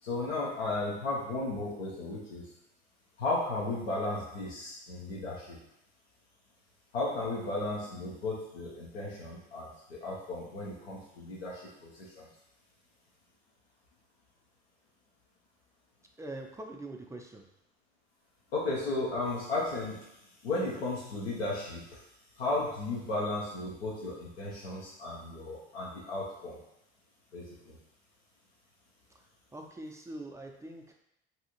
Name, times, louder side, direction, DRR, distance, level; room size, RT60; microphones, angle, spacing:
voice 1, 0.0-2.5 3.2-5.6 6.9-12.3 18.5-22.0 22.3-26.6 27.3-27.8, left 2 dB, 90° left, -5 dB, 0.6 m, -35 dB
voice 2, 16.2-17.5 29.1-29.2 29.5-30.9, right 1 dB, 10° right, 2 dB, 0.3 m, -43 dB
2.7 x 2.4 x 2.8 m, 0.82 s
hypercardioid pair, 60°, 30 cm